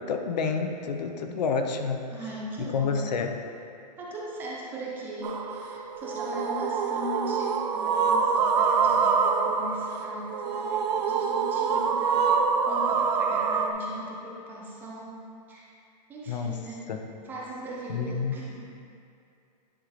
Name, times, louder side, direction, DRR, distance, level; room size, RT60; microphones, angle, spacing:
voice 1, 0.0-2.1 2.7-3.3 16.3-16.5 16.9-17.0 17.9-18.4, left 5 dB, 85° left, 5 dB, 0.7 m, -28 dB
voice 2, 2.1-3.1 4.0-15.2 15.5-15.7 16.1-16.9 17.2-18.6, right 1 dB, 10° right, -4 dB, 0.5 m, -39 dB
sound 1, 5.2-13.7, right 5 dB, 75° right, 0.6 m, -25 dB
10.0 x 3.8 x 3.1 m, 2.5 s
hypercardioid pair, 170°, 21 cm